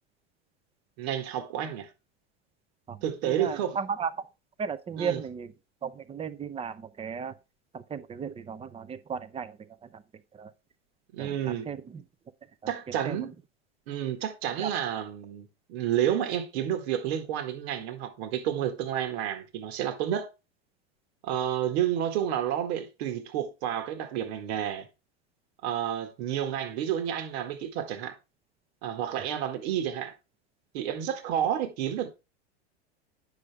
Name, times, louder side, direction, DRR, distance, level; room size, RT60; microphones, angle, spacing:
voice 1, 1.0-1.9 3.0-3.8 5.0-5.2 11.1-11.7 12.7-13.3 13.9-20.3 21.2-24.9 25.6-28.1 28.8-30.1 30.7-32.1, right 10 dB, 65° right, 1.8 m, -30 dB
voice 2, 2.9-4.3 4.6-5.5 5.8-7.3 7.7-10.0 10.3-10.5 11.2-12.0 12.6-13.3 14.6-14.7, right 6 dB, 20° right, 0.7 m, -35 dB
9.6 x 6.5 x 3.4 m
hypercardioid pair, 115°, 33 cm